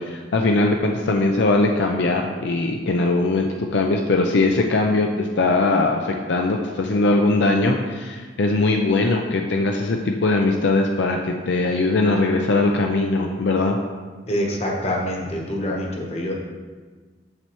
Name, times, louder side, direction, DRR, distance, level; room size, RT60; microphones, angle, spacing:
voice 1, 0.0-13.8, left 2 dB, 70° left, 2 dB, 0.5 m, -20 dB
voice 2, 14.3-16.3, equal, 35° left, -1 dB, 1.0 m, -25 dB
7.3 x 6.8 x 3.0 m, 1.4 s
head